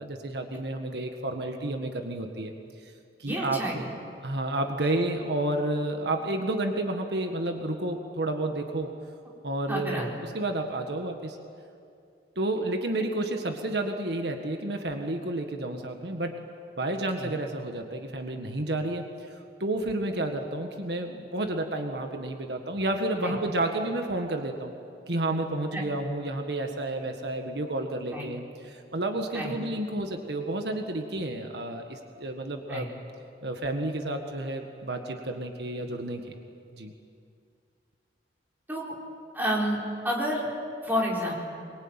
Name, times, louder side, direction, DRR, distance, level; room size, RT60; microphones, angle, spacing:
voice 1, 0.0-2.5 3.2-3.8 4.2-8.9 9.4-10.0 10.3-11.4 12.3-16.4 16.8-24.7 25.1-32.9 33.4-36.3 36.7-36.9, right 1 dB, 70° right, 4 dB, 1.7 m, -31 dB
voice 2, 3.2-3.9 9.7-10.2 17.2-17.3 23.2-23.4 25.7-25.8 28.1-28.2 29.3-29.5 32.7-32.9 38.7-38.9 39.3-39.8 40.0-40.5 40.8-41.3, equal, 10° right, -3 dB, 4.5 m, -29 dB
23.5 x 22.5 x 9.0 m, 2.4 s
head